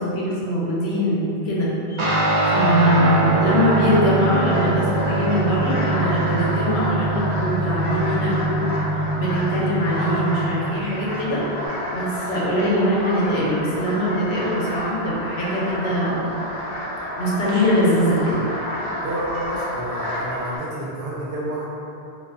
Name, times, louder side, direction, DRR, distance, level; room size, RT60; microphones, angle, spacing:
voice 1, 0.0-8.6 8.9-11.5 11.9-16.3 17.2-18.4, equal, 85° left, -6 dB, 0.9 m, -22 dB
Guitar, 2.0-11.7, right 2 dB, 50° right, 0.3 m, -23 dB
sound 1, 2.8-20.6, left 1 dB, 30° left, 0.6 m, -30 dB
voice 2, 19.0-21.7, right 1 dB, 80° right, -5 dB, 0.8 m, -29 dB
2.4 x 2.3 x 2.3 m, 2.7 s
omnidirectional pair, 1.0 m